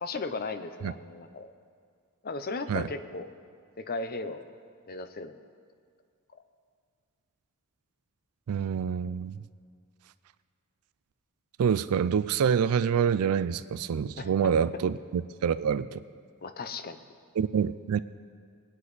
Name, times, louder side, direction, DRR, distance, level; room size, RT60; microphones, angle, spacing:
voice 1, 0.0-1.5 2.2-3.3 3.8-4.5 4.9-5.4 6.3-6.4 14.2-14.3 16.4-17.0, left 3 dB, 40° left, 10 dB, 0.6 m, -36 dB
voice 2, 8.5-9.4 11.6-16.0 17.4-18.0, right 7 dB, 80° right, 14 dB, 0.4 m, -26 dB
20.0 x 9.6 x 4.1 m, 2.1 s
head